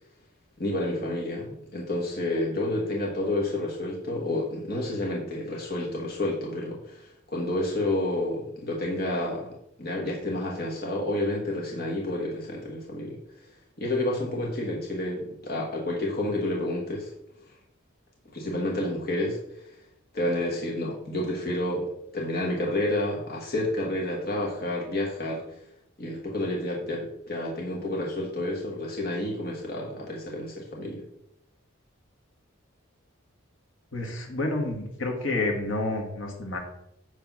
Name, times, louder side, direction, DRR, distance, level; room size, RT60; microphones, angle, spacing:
voice 1, 0.6-13.2 13.8-17.1 18.3-19.7 20.1-25.4 26.0-31.0, left 1 dB, 45° left, -2 dB, 1.4 m, -30 dB
voice 2, 33.9-36.6, left 2 dB, 65° left, 1 dB, 1.6 m, -29 dB
9.3 x 3.4 x 5.9 m, 0.78 s
head